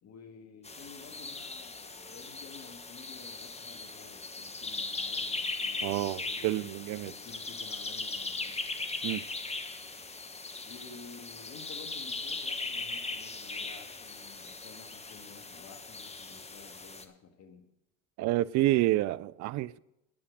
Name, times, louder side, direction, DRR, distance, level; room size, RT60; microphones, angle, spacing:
voice 1, 0.0-6.7 7.0-8.6 10.7-17.7, left 5 dB, 40° left, 1.7 m, -52 dB
sound 1, 0.6-17.0, left 3 dB, 15° left, 1.2 m, -39 dB
voice 2, 5.8-7.1 9.0-9.2 18.2-19.8, right 16 dB, 50° right, 0.5 m, -29 dB
9.7 x 8.7 x 6.3 m
hypercardioid pair, 75°, 39 cm